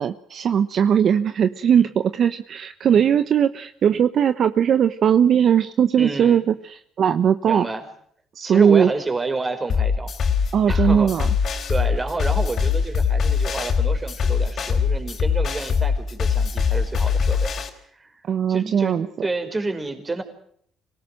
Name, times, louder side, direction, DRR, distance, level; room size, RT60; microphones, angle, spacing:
voice 1, 0.0-7.7 8.3-8.9 10.5-11.3 18.2-19.1, right 8 dB, 55° right, 10 dB, 1.1 m, -19 dB
voice 2, 6.0-6.4 7.5-7.8 8.4-10.1 10.7-11.1 11.7-17.5 17.9-18.2 18.5-20.2, right 3 dB, 20° right, 7 dB, 5.0 m, -29 dB
sound 1, 9.7-17.7, left 6 dB, 50° left, 4.1 m, -22 dB
25.5 x 18.0 x 7.7 m, 0.64 s
cardioid pair, 100°, 0 cm